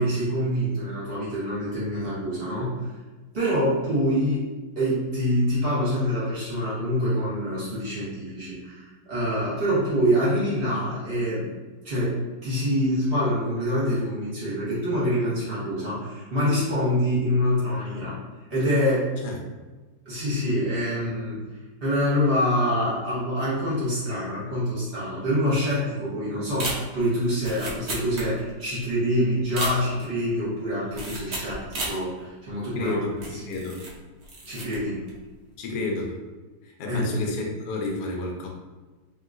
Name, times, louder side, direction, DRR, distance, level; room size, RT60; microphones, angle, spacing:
voice 1, 0.0-2.9 3.3-4.4 4.7-11.5 11.8-18.2 18.5-19.1 20.0-21.4 21.8-33.0 33.3-33.4 34.5-35.0 36.9-37.1, equal, 35° right, -9 dB, 1.0 m, -25 dB
sound 1, 26.5-28.7 28.9-29.0 29.4-30.2 30.9-32.0 32.5-32.6 33.2-34.0 34.2-34.8 35.1-35.4, right 1 dB, 75° right, 0.6 m, -33 dB
voice 2, 32.7-33.8 35.6-36.2 36.8-38.5, left 2 dB, 65° left, -1 dB, 1.0 m, -30 dB
3.0 x 2.9 x 2.4 m, 1.2 s
omnidirectional pair, 2.1 m